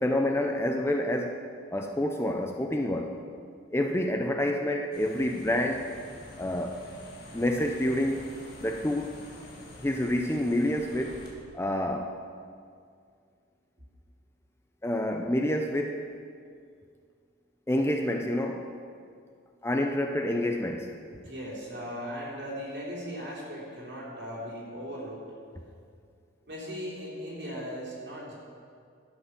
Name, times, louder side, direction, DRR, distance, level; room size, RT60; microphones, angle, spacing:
voice 1, 0.0-1.4 1.7-3.1 3.7-5.9 6.4-6.8 7.3-8.3 8.6-9.1 9.8-11.2 11.5-12.2 14.8-16.1 17.7-18.7 19.6-20.9, left 1 dB, 15° left, 4 dB, 0.5 m, -28 dB
sound 1, 4.9-11.3, left 1 dB, 50° left, 1.9 m, -47 dB
voice 2, 21.2-25.2 26.5-28.3, equal, 55° right, -6 dB, 3.5 m, -38 dB
11.5 x 8.4 x 6.0 m, 2.2 s
head